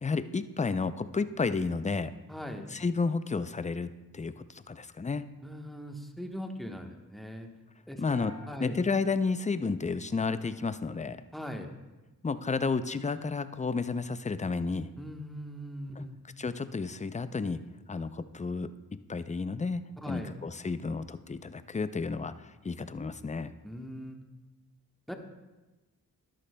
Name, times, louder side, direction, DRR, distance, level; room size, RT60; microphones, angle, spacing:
voice 1, 0.0-2.1 2.7-5.2 8.0-8.3 8.6-11.2 12.2-14.9 16.0-16.1 16.4-17.6 17.9-18.7 19.1-23.5, left 4 dB, 20° left, 13 dB, 0.4 m, -31 dB
voice 2, 2.3-2.7 5.4-7.5 7.9-8.2 8.5-8.8 11.3-11.7 15.0-16.2 20.0-20.4 23.6-24.2 25.1-25.2, equal, ahead, 3 dB, 1.1 m, -40 dB
sound 1, 8.1-10.4, left 2 dB, 70° right, 3.1 m, -51 dB
12.5 x 11.0 x 2.2 m, 1.1 s
cardioid pair, 50°, 37 cm